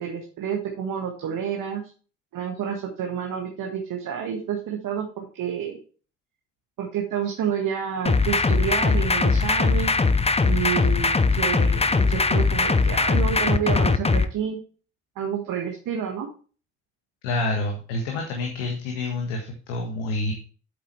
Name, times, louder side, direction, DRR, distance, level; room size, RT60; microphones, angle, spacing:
voice 1, 0.0-1.8 2.3-5.8 6.8-10.0 10.4-14.6 15.2-16.3, right 8 dB, 60° right, 2 dB, 1.8 m, -29 dB
sound 1, 8.1-14.3, left 4 dB, 15° left, 0.9 m, -20 dB
voice 2, 17.2-20.3, left 2 dB, 80° left, 2 dB, 1.5 m, -28 dB
8.6 x 7.7 x 3.3 m, 0.38 s
hypercardioid pair, 45°, 36 cm